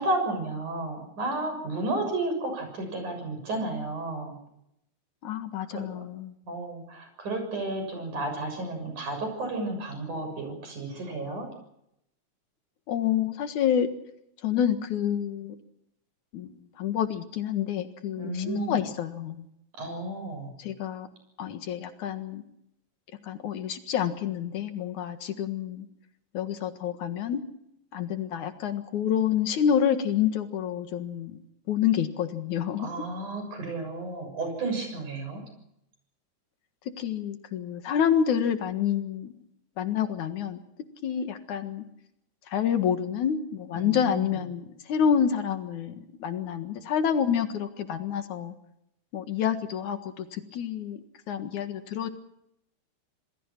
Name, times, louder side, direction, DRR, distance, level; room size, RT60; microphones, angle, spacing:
voice 1, 0.0-4.4 5.7-6.1 6.4-11.5 18.2-18.8 19.8-20.5 32.8-35.4 43.7-44.4, right 2 dB, 85° right, 5 dB, 8.3 m, -32 dB
voice 2, 5.2-6.3 12.9-13.9 14.4-15.5 16.3-16.5 16.8-19.4 20.6-21.1 21.4-22.5 23.3-25.9 26.3-27.4 27.9-31.4 31.7-32.9 37.0-39.3 39.8-40.6 41.0-41.8 42.5-48.5 49.1-51.0 51.3-52.1, left 8 dB, 80° left, 8 dB, 3.1 m, -28 dB
27.5 x 20.0 x 6.0 m, 0.79 s
omnidirectional pair, 3.4 m